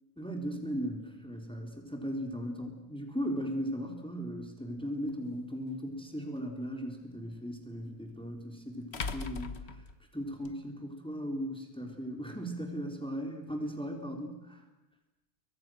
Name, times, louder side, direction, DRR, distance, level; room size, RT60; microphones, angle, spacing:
voice 1, 0.2-9.8 10.1-14.6, equal, 5° left, 2 dB, 3.8 m, -37 dB
sound 1, 5.1-5.2 7.8-7.9 8.9-10.5, left 4 dB, 80° left, 1.6 m, -39 dB
29.5 x 24.5 x 6.4 m, 0.95 s
omnidirectional pair, 1.1 m